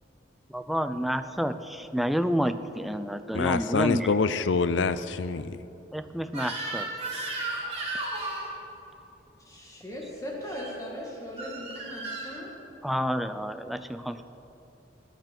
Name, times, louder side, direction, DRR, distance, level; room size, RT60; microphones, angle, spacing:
voice 1, 0.5-4.1 5.9-6.9 12.8-14.2, equal, ahead, 10 dB, 0.4 m, -29 dB
voice 2, 3.3-5.6, left 4 dB, 80° left, 14 dB, 0.5 m, -26 dB
Crying sobbing / Screech, 6.3-8.5 10.4-10.7 11.4-12.3, right 2 dB, 35° right, 3.3 m, -34 dB
voice 3, 9.5-12.5, equal, 20° left, -2 dB, 1.9 m, -38 dB
22.0 x 9.4 x 6.0 m, 3.0 s
head